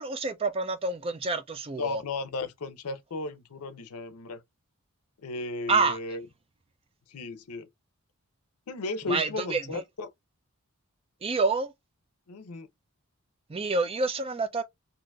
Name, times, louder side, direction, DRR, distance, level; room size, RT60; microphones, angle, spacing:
voice 1, 0.0-2.0 5.7-6.0 9.1-9.8 11.2-11.7 13.5-14.6, right 3 dB, 25° right, 0.4 m, -28 dB
voice 2, 1.7-4.4 5.2-6.2 7.1-7.7 8.7-10.1 12.3-12.7, left 3 dB, 85° left, 0.6 m, -35 dB
3.7 x 2.5 x 2.2 m
head